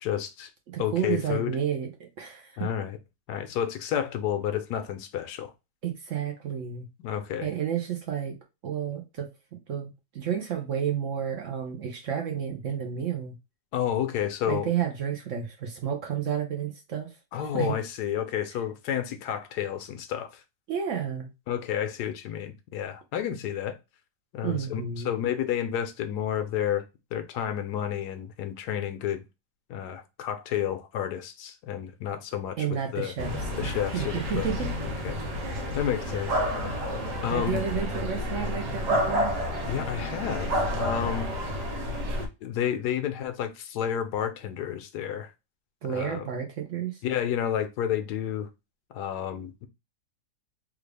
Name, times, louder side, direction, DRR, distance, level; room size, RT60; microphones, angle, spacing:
voice 1, 0.0-0.5 0.8-1.6 2.6-3.0 3.3-5.5 7.0-7.5 13.7-14.7 17.3-20.4 21.5-23.8 24.3-26.8 27.1-29.2 29.7-32.7 32.9-33.1 33.6-34.5 34.8-35.2 35.7-36.4 37.2-37.6 39.7-41.3 42.4-45.3 45.9-46.3 47.0-48.5 48.9-49.7, left 10 dB, 80° left, 1.2 m, -30 dB
voice 2, 0.7-2.7 5.8-6.9 7.4-8.4 8.6-9.3 9.7-13.4 14.5-17.7 20.7-21.3 24.4-25.1 32.6-34.7 35.4-35.8 37.3-39.3 45.8-47.0, right 8 dB, 60° right, 0.9 m, -31 dB
sound 1, 33.2-42.3, equal, 85° right, 1.5 m, -30 dB
3.5 x 2.4 x 3.2 m
omnidirectional pair, 1.8 m